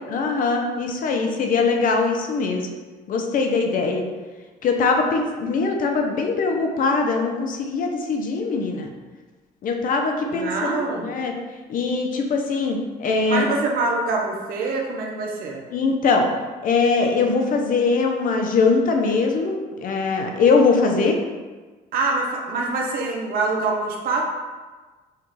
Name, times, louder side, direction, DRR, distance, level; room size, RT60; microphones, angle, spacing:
voice 1, 0.0-2.7 3.1-4.0 4.6-8.9 9.6-11.3 11.7-13.5 15.7-16.3 16.6-21.2, left 4 dB, 55° left, 3 dB, 0.7 m, -21 dB
voice 2, 10.3-11.1 13.3-15.6 21.9-24.2, right 3 dB, 60° right, -1 dB, 0.8 m, -25 dB
5.6 x 2.4 x 3.2 m, 1.3 s
cardioid pair, 110°, 17 cm